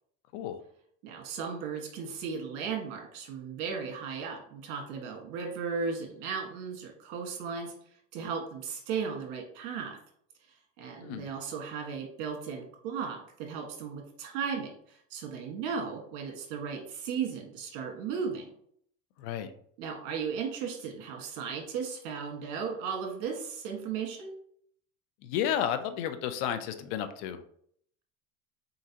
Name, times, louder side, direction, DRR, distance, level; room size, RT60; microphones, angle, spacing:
voice 1, 1.0-7.7 8.1-10.0 10.8-18.5 19.8-24.3, right 6 dB, 70° right, 1 dB, 1.6 m, -36 dB
voice 2, 19.2-19.5 25.2-27.4, left 9 dB, 75° left, 10 dB, 0.7 m, -32 dB
4.1 x 3.8 x 2.8 m, 0.65 s
supercardioid pair, 115°, 35 cm